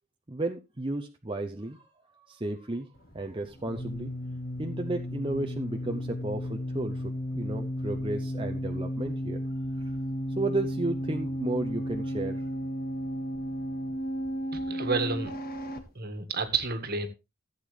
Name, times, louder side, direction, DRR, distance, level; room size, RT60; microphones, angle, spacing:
voice 1, 0.3-1.8 2.1-2.9 3.1-4.1 4.6-9.4 9.9-10.0 10.4-12.5, right 2 dB, 25° right, 4 dB, 0.7 m, -33 dB
sound 1, 3.0-15.8, equal, 45° left, 1.7 m, -34 dB
voice 2, 14.5-15.3 16.0-17.1, right 4 dB, 45° right, 9 dB, 1.6 m, -30 dB
15.5 x 8.1 x 3.3 m, 0.27 s
head